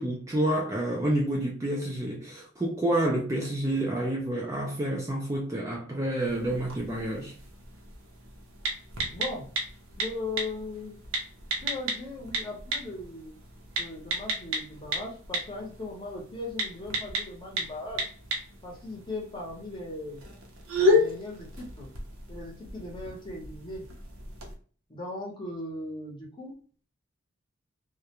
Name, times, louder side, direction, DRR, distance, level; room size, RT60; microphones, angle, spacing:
voice 1, 0.0-7.3, right 1 dB, 15° right, 0.3 m, -29 dB
sound 1, 6.3-24.5, left 1 dB, 75° right, 0.7 m, -33 dB
voice 2, 9.1-9.5 10.0-11.0 11.6-13.3 13.8-18.1 18.6-20.2 20.7-21.9 22.3-23.8 24.9-26.8, left 2 dB, 20° left, 0.7 m, -38 dB
2.3 x 2.1 x 2.8 m
head